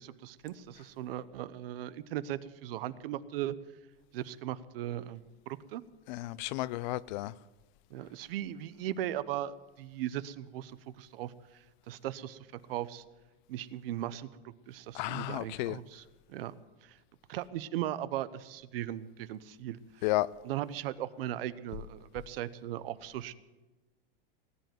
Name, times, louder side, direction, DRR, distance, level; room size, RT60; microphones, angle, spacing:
voice 1, 0.0-3.5 4.1-5.8 7.9-13.0 13.5-16.5 16.8-17.0 17.3-20.1 20.4-23.3, right 12 dB, 70° right, 0.9 m, -38 dB
voice 2, 6.1-7.3 14.9-15.8 20.0-20.3, left 18 dB, 50° left, 0.5 m, -32 dB
18.5 x 8.2 x 9.2 m
supercardioid pair, 145°, 30 cm